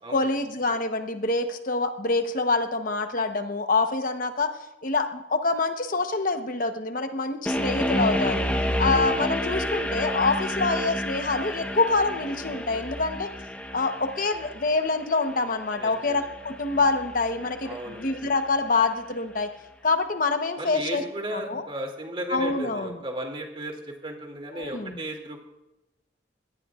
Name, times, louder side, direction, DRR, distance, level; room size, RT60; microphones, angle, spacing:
voice 1, 0.1-4.5 4.8-8.4 8.8-13.3 13.7-19.5 19.8-21.0 21.3-21.6 22.3-22.9 24.6-25.0, left 3 dB, 50° left, 6 dB, 1.0 m, -26 dB
sound 1, 7.5-18.5, equal, 10° left, 1.1 m, -30 dB
voice 2, 15.8-16.2 17.6-18.0 20.6-25.4, right 1 dB, 30° right, 2 dB, 2.5 m, -35 dB
22.0 x 18.0 x 2.5 m, 0.96 s
head